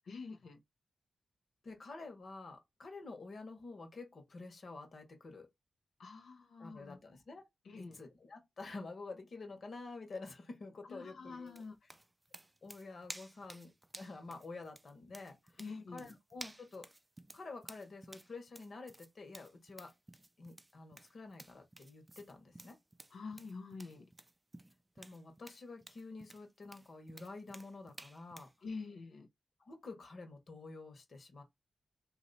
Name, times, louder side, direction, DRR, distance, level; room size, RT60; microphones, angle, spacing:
voice 1, 0.1-0.6 6.0-7.0 7.6-8.0 10.9-11.8 15.6-16.1 23.1-24.1 28.6-29.3, left 4 dB, 90° left, 0.8 m, -46 dB
voice 2, 1.6-5.5 6.6-7.5 7.7-11.6 12.6-15.6 15.9-16.9 17.3-19.9 20.4-22.8 25.0-28.5 29.6-31.4, left 3 dB, 65° left, 1.4 m, -49 dB
sound 1, 11.5-28.6, right 1 dB, 20° right, 0.4 m, -54 dB
2.9 x 2.7 x 4.1 m
cardioid pair, 65°, 0 cm